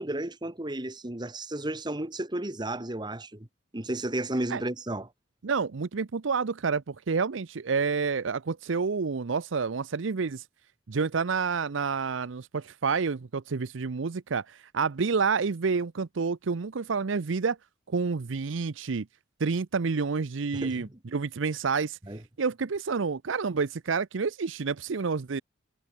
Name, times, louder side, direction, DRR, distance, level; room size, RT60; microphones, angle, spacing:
voice 1, 0.0-3.5 3.7-5.1 20.5-20.9 22.1-22.2, right 1 dB, 20° right, 1.5 m, -33 dB
voice 2, 5.4-10.4 10.9-17.6 17.9-19.1 19.4-22.0 22.4-25.4, right 5 dB, 75° right, 0.6 m, -29 dB
head